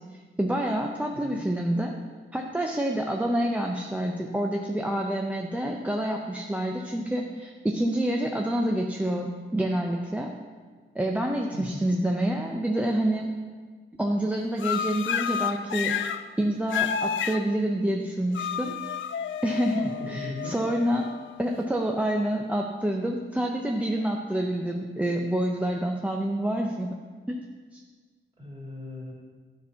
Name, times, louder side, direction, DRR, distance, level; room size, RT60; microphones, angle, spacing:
voice 1, 0.1-1.9 2.3-10.3 10.9-13.3 14.0-16.0 16.4-18.7 19.4-21.1 21.4-27.0 27.3-27.4 27.7-27.8, right 1 dB, 5° right, 1 dB, 0.5 m, -27 dB
voice 2, 1.1-1.4 11.5-11.9 19.8-20.6 28.4-29.1, left 1 dB, 25° right, -4 dB, 2.3 m, -38 dB
sound 1, 14.6-16.2 16.7-17.4 18.3-21.6, left 8 dB, 65° left, 0.5 m, -30 dB
13.0 x 4.4 x 5.6 m, 1.5 s
wide cardioid pair, 170°, 21 cm